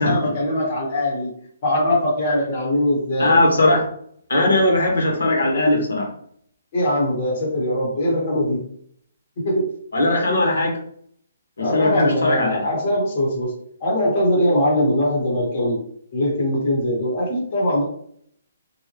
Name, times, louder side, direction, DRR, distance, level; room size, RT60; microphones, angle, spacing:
voice 1, 0.0-1.3 1.6-3.4 6.7-8.6 9.4-9.7 11.6-13.5 13.8-15.8 16.1-17.8, left 1 dB, 25° left, -4 dB, 1.2 m, -21 dB
voice 2, 3.2-3.8 4.3-6.1 9.9-10.7 11.6-12.6, left 2 dB, 85° left, 0 dB, 1.5 m, -18 dB
3.7 x 2.8 x 3.1 m, 0.64 s
hypercardioid pair, 175°, 0 cm